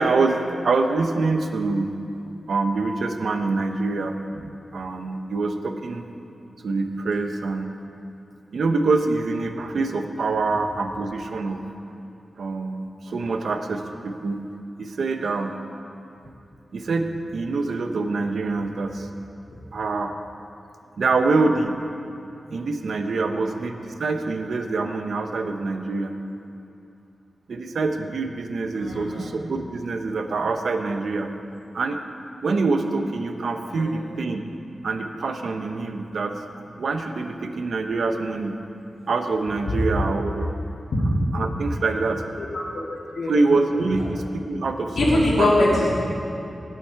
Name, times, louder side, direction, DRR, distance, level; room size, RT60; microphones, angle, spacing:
voice 1, 0.0-1.9 2.5-6.0 6.6-7.7 8.5-11.6 12.4-14.4 14.8-15.5 16.7-19.1 19.7-20.1 21.0-21.8 22.5-26.1 27.5-31.3 31.7-32.0 32.4-34.4 34.8-36.4 36.8-38.5 39.1-40.5 41.3-42.2 43.3-45.5, right 3 dB, 80° right, 6 dB, 0.9 m, -25 dB
voice 2, 28.7-29.3 33.7-34.2 39.7-39.8 42.3-42.5 43.1-43.3 45.0-45.9, left 1 dB, 80° left, -5 dB, 3.2 m, -22 dB
17.5 x 8.3 x 4.7 m, 2.8 s
wide cardioid pair, 95°, 0 cm